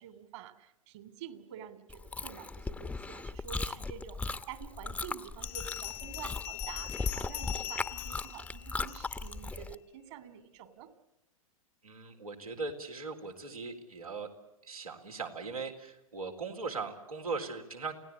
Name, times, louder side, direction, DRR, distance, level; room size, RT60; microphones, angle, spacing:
voice 1, 0.0-10.9, right 10 dB, 55° right, 11 dB, 2.8 m, -48 dB
Chewing mastication, 1.9-9.7, left 3 dB, 5° left, 1.0 m, -38 dB
Bell, 5.4-9.3, left 19 dB, 45° left, 0.8 m, -41 dB
voice 2, 11.8-14.3 14.7-17.9, right 4 dB, 85° right, 1 dB, 4.1 m, -39 dB
29.5 x 17.5 x 8.4 m, 0.94 s
figure-of-eight pair, 100°, 18 cm